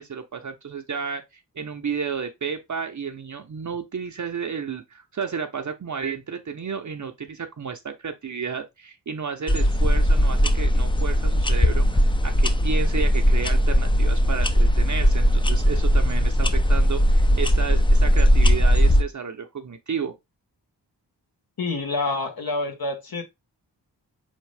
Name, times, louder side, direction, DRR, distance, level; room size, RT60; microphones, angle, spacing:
voice 1, 0.0-20.1, right 6 dB, 45° right, 0.7 m, -32 dB
sound 1, 9.5-19.0, equal, 10° left, 0.5 m, -19 dB
voice 2, 21.6-23.2, left 3 dB, 55° left, 1.2 m, -27 dB
4.1 x 3.6 x 3.3 m
cardioid pair, 45°, 42 cm